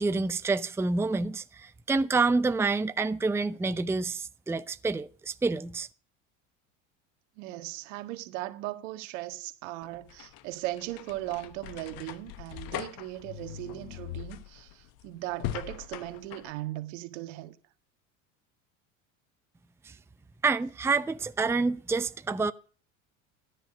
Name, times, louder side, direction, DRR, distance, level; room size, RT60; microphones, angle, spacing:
voice 1, 0.0-5.9 19.8-19.9 20.4-22.5, right 3 dB, 5° right, 0.6 m, -28 dB
voice 2, 7.4-17.6, right 16 dB, 70° right, 1.7 m, -38 dB
sound 1, 9.8-16.5, left 13 dB, 60° left, 1.2 m, -41 dB
13.5 x 10.0 x 5.1 m
hypercardioid pair, 85°, 38 cm